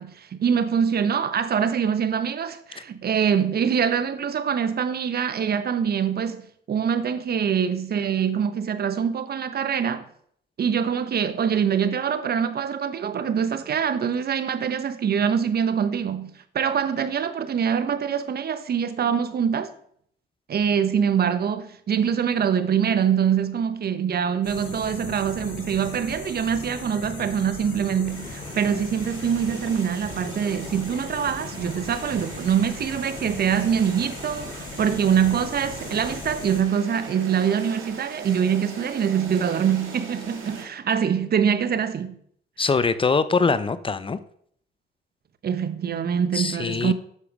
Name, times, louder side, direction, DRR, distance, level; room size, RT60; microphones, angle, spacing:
voice 1, 0.0-10.0 10.6-19.7 20.5-42.2 45.4-46.9, right 7 dB, 55° right, 1.0 m, -24 dB
sound 1, 24.4-36.6, left 4 dB, 65° left, 4.3 m, -38 dB
sound 2, 28.1-40.7, right 4 dB, 80° right, 3.0 m, -41 dB
voice 2, 42.6-44.2 46.3-46.9, left 4 dB, 25° left, 0.6 m, -23 dB
8.5 x 7.1 x 6.0 m
cardioid pair, 90°, 20 cm